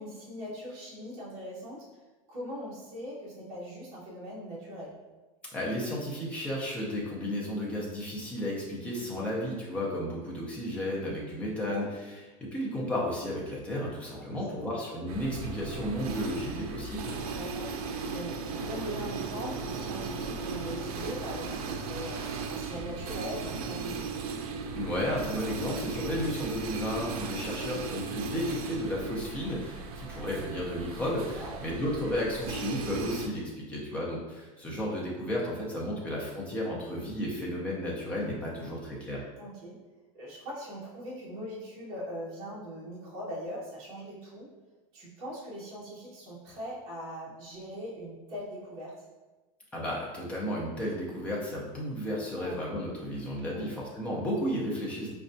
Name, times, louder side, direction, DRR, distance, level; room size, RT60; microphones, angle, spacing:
voice 1, 0.0-1.8 2.3-5.0 9.1-9.4 11.6-11.9 14.1-14.7 16.4-16.7 17.3-17.7 18.1-22.2 22.5-24.1 27.6-27.8 29.9-30.3 31.4-31.6 35.9-36.0 38.5-38.6 39.4-39.8 40.1-44.5 44.9-49.0 52.4-52.6 53.5-53.7, equal, 35° right, -7 dB, 0.9 m, -41 dB
voice 2, 5.5-17.2 24.8-39.2 49.7-55.1, equal, 5° left, -4 dB, 0.4 m, -33 dB
sound 1, 15.1-33.3, right 4 dB, 80° right, 0.5 m, -36 dB
5.1 x 2.2 x 2.5 m, 1.2 s
supercardioid pair, 175°, 19 cm